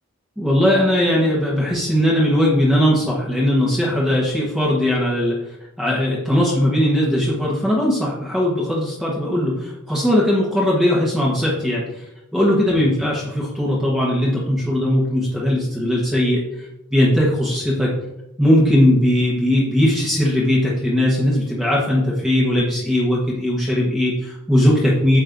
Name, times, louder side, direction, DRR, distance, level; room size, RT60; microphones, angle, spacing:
voice 1, 0.4-12.0 12.3-17.9 18.4-25.2, left 1 dB, ahead, -6 dB, 1.1 m, -19 dB
9.5 x 7.4 x 2.6 m, 0.92 s
head